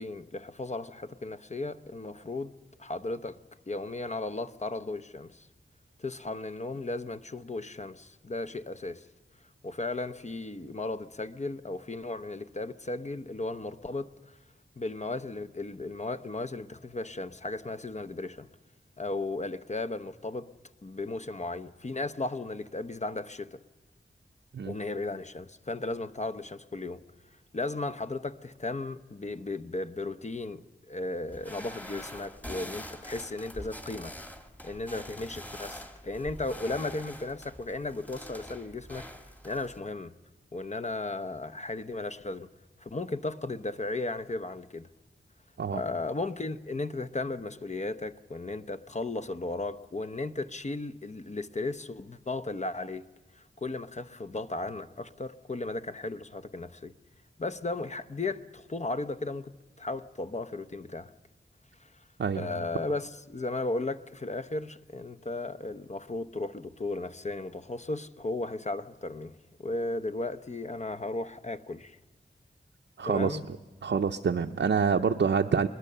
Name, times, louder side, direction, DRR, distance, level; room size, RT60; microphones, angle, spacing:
voice 1, 0.0-2.5 2.8-3.4 3.7-5.5 6.0-9.0 9.6-14.4 14.8-18.5 19.0-20.5 20.8-23.6 24.6-27.0 27.5-34.1 34.6-39.0 39.4-40.1 40.5-42.5 42.8-44.9 45.7-53.1 53.3-56.9 57.4-59.5 59.8-61.1 61.8-61.9 62.3-72.0 73.0-73.4, left 2 dB, 35° left, 0.8 m, -35 dB
sound 1, 31.3-39.8, equal, 10° left, 1.6 m, -44 dB
voice 2, 73.0-73.6 73.8-75.7, right 6 dB, 70° right, 0.7 m, -27 dB
21.0 x 21.0 x 6.7 m
wide cardioid pair, 90°, 19 cm